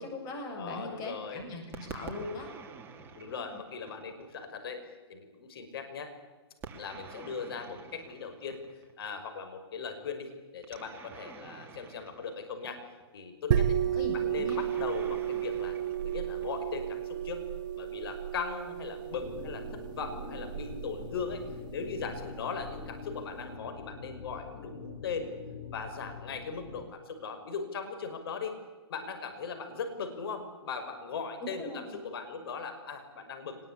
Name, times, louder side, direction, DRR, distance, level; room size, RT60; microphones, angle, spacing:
voice 1, 0.0-2.5 3.3-3.6 13.9-14.6 31.4-32.0, left 1 dB, 25° left, 3 dB, 7.8 m, -40 dB
voice 2, 0.5-1.4 3.2-6.1 6.8-8.6 9.0-12.8 13.1-13.8 14.1-15.8 16.0-17.4 17.8-21.4 21.7-25.3 25.7-28.5 28.9-33.6, left 5 dB, 60° left, 7 dB, 5.7 m, -39 dB
sound 1, 1.7-4.4 6.6-9.0 10.6-13.1 14.5-16.9, right 4 dB, 15° right, 3.0 m, -48 dB
sound 2, 13.5-22.9, right 10 dB, 50° right, 1.9 m, -33 dB
sound 3, 19.1-26.8, left 4 dB, 80° left, 7.5 m, -45 dB
24.0 x 21.0 x 10.0 m, 1.3 s
hypercardioid pair, 140°, 14 cm